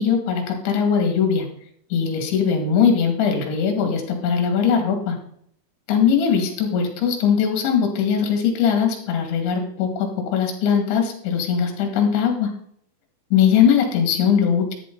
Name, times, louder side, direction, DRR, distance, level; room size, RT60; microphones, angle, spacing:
voice 1, 0.0-1.5 1.9-5.2 5.9-12.5 13.3-14.7, left 7 dB, 65° left, 3 dB, 4.3 m, -20 dB
14.0 x 11.0 x 3.9 m, 0.68 s
omnidirectional pair, 5.9 m